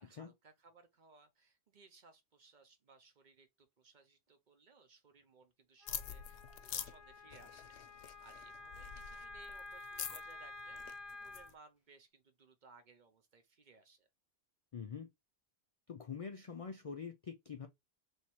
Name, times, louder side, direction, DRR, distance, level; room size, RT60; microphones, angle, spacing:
voice 1, 0.0-14.1, right 4 dB, 50° right, 0.8 m, -63 dB
Wind instrument woodwind instrument, 5.8-11.5, left 3 dB, 15° left, 1.3 m, -51 dB
sound 1, 5.9-11.5, left 9 dB, 80° left, 0.8 m, -46 dB
voice 2, 14.7-15.1 15.9-17.7, left 6 dB, 55° left, 0.4 m, -45 dB
3.2 x 2.9 x 4.3 m
omnidirectional pair, 1.1 m